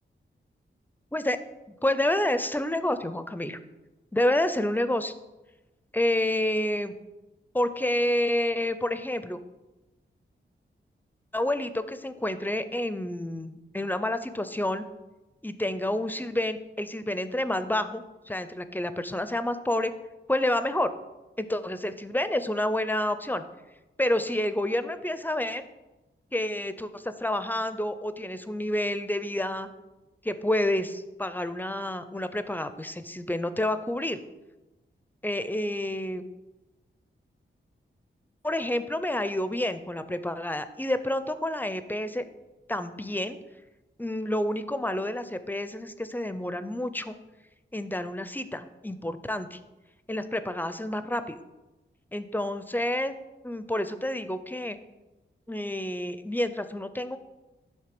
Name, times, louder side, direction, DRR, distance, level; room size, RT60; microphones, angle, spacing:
voice 1, 1.8-3.6 4.1-5.1 5.9-6.9 7.5-9.4 11.3-14.9 15.4-19.9 20.3-20.9 21.4-23.4 24.0-25.6 26.3-29.7 30.2-34.2 35.2-36.2 38.4-42.2 42.7-43.4 44.0-47.1 47.7-49.6 50.1-51.4 52.1-53.1 53.4-54.8 55.5-57.2, left 1 dB, 10° left, 11 dB, 0.4 m, -29 dB
7.8 x 3.2 x 6.0 m, 1.1 s
cardioid pair, 70°, 20 cm